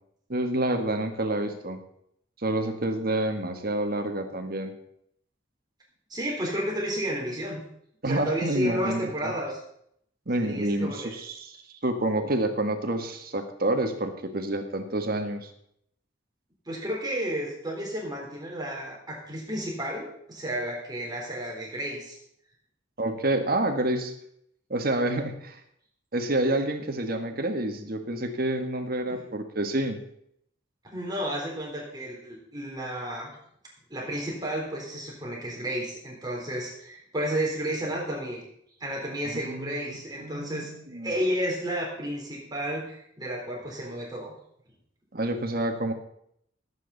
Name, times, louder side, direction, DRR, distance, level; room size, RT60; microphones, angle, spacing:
voice 1, 0.3-1.8 2.4-4.7 8.0-9.3 10.3-11.6 11.8-15.5 23.0-24.1 24.7-25.6 26.1-30.0 39.3-41.1 45.1-45.9, right 1 dB, 50° right, 6 dB, 1.6 m, -28 dB
voice 2, 6.1-7.6 8.0-9.6 10.4-11.1 16.7-22.2 30.8-33.3 33.9-38.4 38.8-44.3, equal, 20° right, -2 dB, 3.6 m, -32 dB
19.0 x 8.6 x 4.0 m, 0.70 s
head